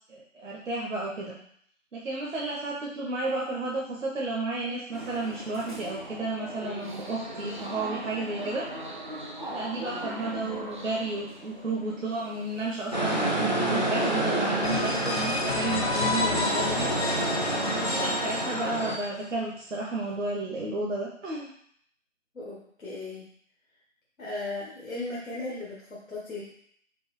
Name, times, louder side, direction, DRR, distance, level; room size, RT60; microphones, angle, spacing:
voice 1, 0.3-1.4 1.9-8.7 9.5-16.9 17.7-21.5, right 2 dB, 65° right, -3 dB, 0.9 m, -32 dB
sound 1, 4.9-13.4, right 1 dB, 40° right, 0.5 m, -40 dB
sound 2, 12.9-19.0, right 2 dB, 35° left, 0.4 m, -28 dB
sound 3, 14.6-19.2, left 3 dB, 50° left, 0.8 m, -30 dB
voice 2, 22.3-23.3 24.2-26.4, left 2 dB, 80° left, -6 dB, 1.4 m, -36 dB
5.3 x 2.7 x 3.2 m, 0.66 s
figure-of-eight pair, 160°, 40 cm